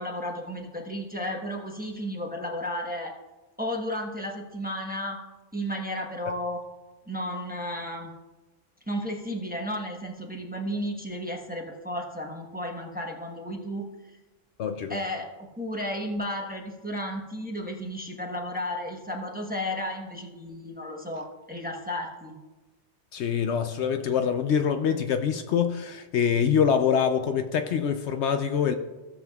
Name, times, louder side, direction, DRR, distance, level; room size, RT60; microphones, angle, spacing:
voice 1, 0.0-3.1 3.6-5.2 5.5-6.6 7.1-8.1 8.9-13.9 14.9-22.3, equal, 10° right, 1.0 m, -33 dB
voice 2, 14.6-15.0 23.1-28.7, left 7 dB, 70° left, 0.8 m, -25 dB
16.0 x 7.2 x 2.3 m
omnidirectional pair, 1.2 m